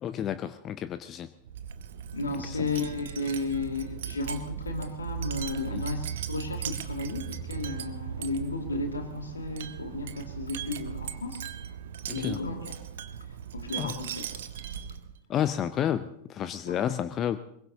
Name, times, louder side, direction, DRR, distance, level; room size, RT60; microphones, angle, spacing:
voice 1, 0.0-1.3 2.3-2.7 5.7-5.8 12.1-12.4 13.8-13.9 15.3-17.4, left 10 dB, 30° left, 13 dB, 0.6 m, -31 dB
Wind chime, 1.4-15.2, right 9 dB, 60° right, 0.9 m, -38 dB
voice 2, 2.1-11.4 12.1-12.8 13.5-14.4 16.7-16.8, left 3 dB, 75° left, 4 dB, 2.3 m, -34 dB
23.5 x 21.5 x 2.8 m, 0.76 s
figure-of-eight pair, 90°, 0 cm